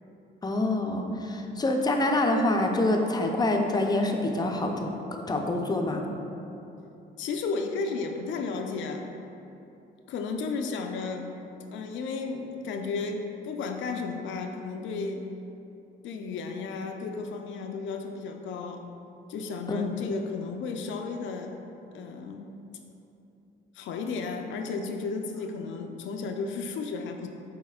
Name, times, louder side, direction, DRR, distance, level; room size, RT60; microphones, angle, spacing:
voice 1, 0.4-4.9 5.3-6.0 19.7-19.8, left 2 dB, 20° left, 2 dB, 0.4 m, -26 dB
voice 2, 7.2-9.1 10.1-11.3 11.7-15.3 16.0-18.8 19.3-21.6 21.9-22.5 23.7-27.3, left 4 dB, 75° left, 5 dB, 0.4 m, -33 dB
5.6 x 4.2 x 2.3 m, 2.9 s
cardioid pair, 90°, 20 cm